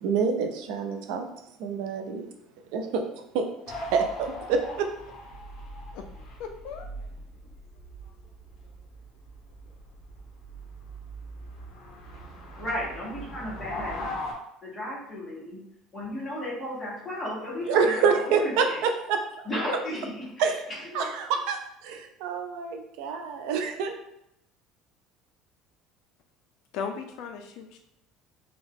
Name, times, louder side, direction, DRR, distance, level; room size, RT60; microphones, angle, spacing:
voice 1, 0.0-1.3 1.6-2.3 2.7-3.0 3.3-3.5 3.9-4.9 17.7-19.2 20.4-20.6 20.9-23.9, right 5 dB, 70° right, 5 dB, 0.4 m, -27 dB
sound 1, 3.7-14.3, equal, 40° left, 0.8 m, -41 dB
voice 2, 6.4-6.9 26.7-27.8, left 6 dB, 60° left, 4 dB, 0.3 m, -36 dB
voice 3, 12.6-14.1 14.6-15.6 15.9-18.8 19.4-21.1, left 1 dB, 15° left, -7 dB, 1.2 m, -34 dB
3.5 x 2.3 x 3.5 m, 0.81 s
cardioid pair, 175°, 0 cm